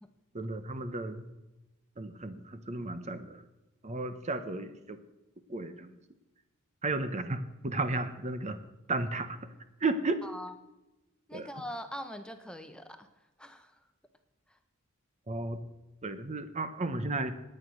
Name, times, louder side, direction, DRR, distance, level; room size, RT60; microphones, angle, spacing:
voice 1, 0.3-1.3 2.0-3.4 3.8-5.0 5.5-5.9 6.8-8.6 8.9-9.4 9.8-10.2 11.3-11.5 15.3-15.6 16.0-17.3, right 2 dB, 30° right, 10 dB, 0.9 m, -33 dB
voice 2, 10.2-10.5 11.3-13.1 13.4-13.8 14.5-14.6, equal, 5° left, 8 dB, 1.0 m, -42 dB
18.5 x 8.8 x 6.3 m, 1.0 s
head